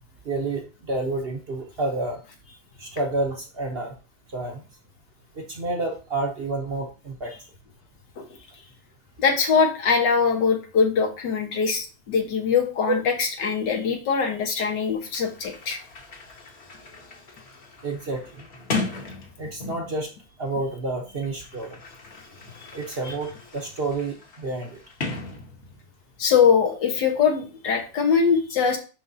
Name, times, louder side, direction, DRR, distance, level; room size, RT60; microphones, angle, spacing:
voice 1, 0.2-2.2 2.8-3.9 4.3-4.6 5.3-7.3 12.9-13.0 17.8-18.5 19.4-20.1 20.4-21.8 22.7-24.8, right 2 dB, 45° right, 2 dB, 0.9 m, -29 dB
voice 2, 9.2-15.8 23.1-23.2 26.2-28.8, left 6 dB, 90° left, 3 dB, 1.9 m, -22 dB
Sliding door, 15.0-20.1 21.0-26.0, left 3 dB, 45° left, 1.3 m, -37 dB
10.0 x 3.5 x 2.7 m, 0.33 s
omnidirectional pair, 1.8 m